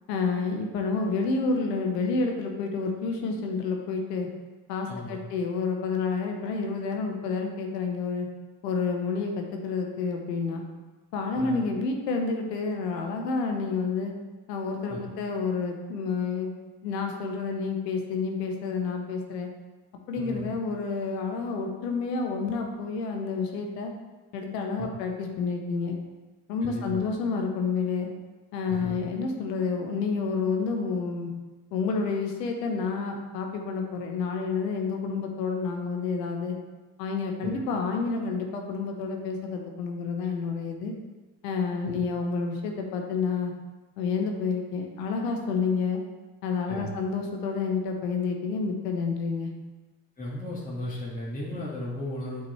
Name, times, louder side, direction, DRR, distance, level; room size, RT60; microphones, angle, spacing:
voice 1, 0.1-4.3 4.7-8.3 8.6-10.6 11.1-14.1 14.5-16.5 16.8-19.5 20.1-23.9 24.3-26.0 26.5-28.1 28.5-31.3 31.7-36.6 37.0-40.9 41.4-43.5 44.0-46.0 46.4-49.5, left 4 dB, 90° left, 3 dB, 0.8 m, -29 dB
voice 2, 4.9-5.2 11.4-11.6 14.9-15.0 20.2-20.5 26.6-27.0 28.7-29.0 46.7-46.9 50.2-52.5, left 1 dB, 15° left, -7 dB, 1.9 m, -35 dB
8.1 x 4.7 x 3.1 m, 1.2 s
hypercardioid pair, 55°, 47 cm